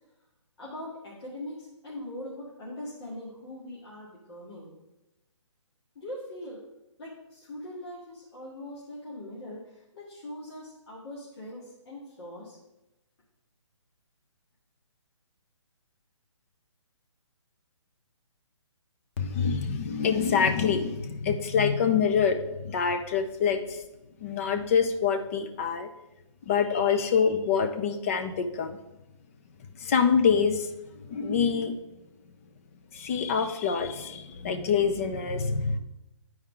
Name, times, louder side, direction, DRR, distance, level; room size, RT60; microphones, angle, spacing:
voice 1, 0.6-4.7 6.0-6.6 7.0-12.6, left 1 dB, 55° left, -7 dB, 2.0 m, -41 dB
voice 2, 19.2-23.8 24.2-25.9 26.5-28.8 29.8-30.7 31.1-31.7 32.9-35.8, left 6 dB, 25° left, 7 dB, 0.5 m, -26 dB
9.5 x 4.6 x 3.7 m, 0.95 s
hypercardioid pair, 155°, 16 cm